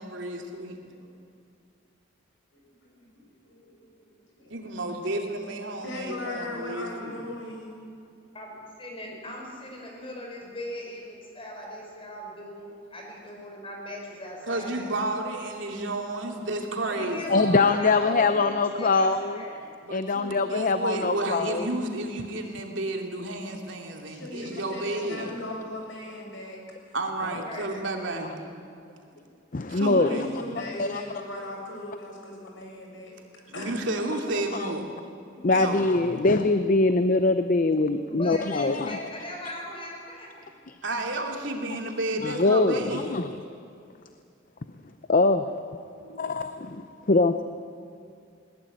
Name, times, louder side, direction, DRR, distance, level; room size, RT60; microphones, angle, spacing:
voice 1, 0.0-0.8 4.5-7.1 14.5-17.5 19.8-25.3 26.9-28.3 29.7-30.3 33.5-34.9 35.5-35.9 40.8-43.2, right 2 dB, 70° right, 2 dB, 2.9 m, -31 dB
voice 2, 2.5-4.6 5.8-7.9 24.1-26.6 29.1-29.7 30.0-33.1 33.5-33.8 35.3-35.7 38.6-38.8, left 2 dB, 75° left, -1 dB, 6.8 m, -39 dB
voice 3, 8.3-15.1 16.9-18.5 18.8-19.6 27.2-28.4 38.1-40.5 45.9-46.3, left 1 dB, 30° left, 0 dB, 5.5 m, -39 dB
voice 4, 17.3-19.4 19.9-21.7 29.5-30.3 30.8-31.0 34.6-34.7 35.4-39.0 40.7-40.8 42.2-43.3 45.1-45.6 46.2-47.4, left 3 dB, 45° left, 10 dB, 0.7 m, -23 dB
21.0 x 19.0 x 8.9 m, 2.4 s
head